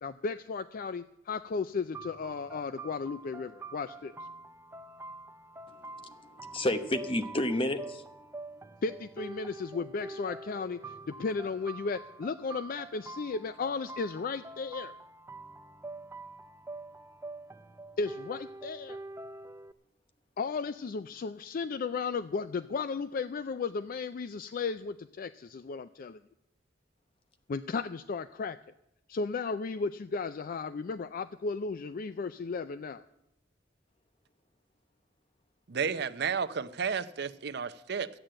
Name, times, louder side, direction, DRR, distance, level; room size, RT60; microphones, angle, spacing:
voice 1, 0.0-4.1 8.8-14.9 18.0-19.0 20.4-26.2 27.5-28.6 29.1-33.0, left 4 dB, 50° left, 0.4 m, -35 dB
sound 1, 1.9-19.7, right 2 dB, 15° right, 0.5 m, -46 dB
voice 2, 5.7-8.3 8.6-8.7, left 1 dB, 30° left, 1.0 m, -32 dB
voice 3, 35.7-38.1, right 6 dB, 60° right, 0.6 m, -32 dB
13.0 x 8.9 x 7.7 m
head